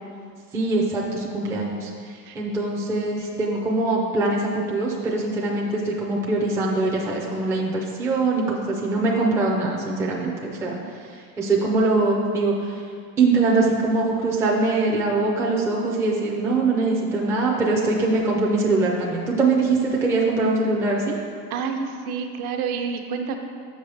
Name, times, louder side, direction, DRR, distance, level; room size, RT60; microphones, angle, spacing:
voice 1, 0.5-10.8 11.1-12.8 13.2-21.2, right 3 dB, 5° right, -3 dB, 0.3 m, -23 dB
voice 2, 21.5-23.4, right 6 dB, 65° right, 4 dB, 0.8 m, -28 dB
7.5 x 5.4 x 3.3 m, 2.2 s
supercardioid pair, 135°, 47 cm